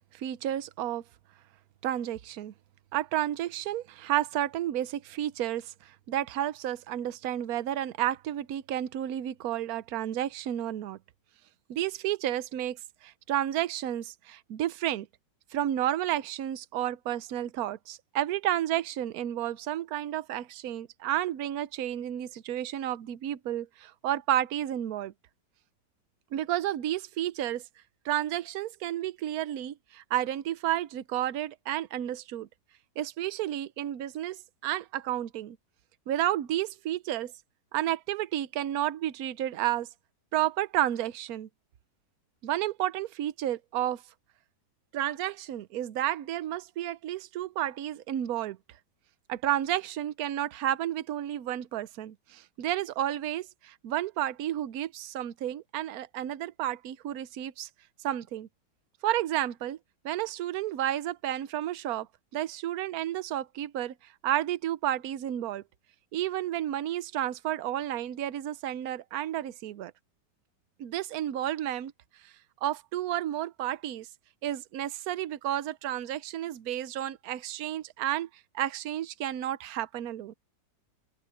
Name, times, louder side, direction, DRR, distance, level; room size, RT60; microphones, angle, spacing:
voice 1, 0.1-1.0 1.8-2.5 2.9-11.0 11.7-15.1 15.5-25.1 26.3-27.6 28.0-32.5 33.0-35.6 36.1-37.3 37.7-39.9 40.3-41.5 42.4-44.0 44.9-48.6 49.3-57.7 58.0-58.5 59.0-59.8 60.0-62.1 62.3-63.9 64.2-65.6 66.1-69.9 70.8-71.9 72.2-72.3 72.6-74.1 74.4-78.3 78.5-80.3, right 12 dB, 60° right, 1.1 m, -31 dB
open air
omnidirectional pair, 1.9 m